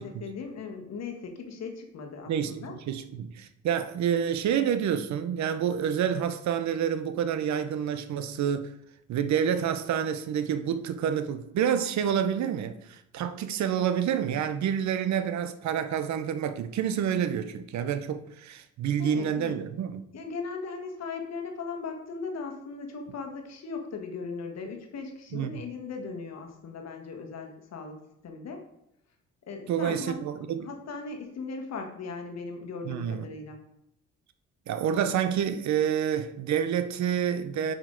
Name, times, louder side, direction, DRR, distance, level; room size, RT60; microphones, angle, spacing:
voice 1, 0.0-2.7 19.0-19.7 20.1-28.0 28.2-28.6 29.5-30.2 30.6-33.6, left 4 dB, 60° left, 1.4 m, -38 dB
voice 2, 2.3-8.7 9.1-20.0 25.3-25.6 29.7-30.7 32.8-33.3 34.7-37.7, right 8 dB, 65° right, 0.7 m, -28 dB
5.9 x 5.2 x 3.8 m
cardioid pair, 90°, 30 cm